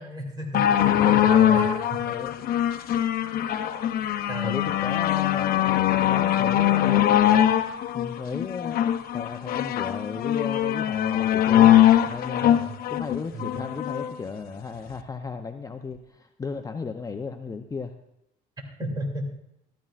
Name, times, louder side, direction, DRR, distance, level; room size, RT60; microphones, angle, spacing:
voice 1, 0.0-2.0 2.4-2.6 4.3-4.6 12.4-12.7 13.3-13.5 18.8-19.2, right 1 dB, 25° right, 1 dB, 2.7 m, -33 dB
sound 1, 0.5-14.1 14.9-15.0, left 11 dB, 60° left, 0.7 m, -22 dB
voice 2, 2.0-2.4 4.4-7.1 7.9-8.8 9.1-11.7 12.1-12.6 12.9-17.9, left 4 dB, 20° left, 6 dB, 0.6 m, -35 dB
14.0 x 13.0 x 2.5 m, 0.81 s
cardioid pair, 110°, 17 cm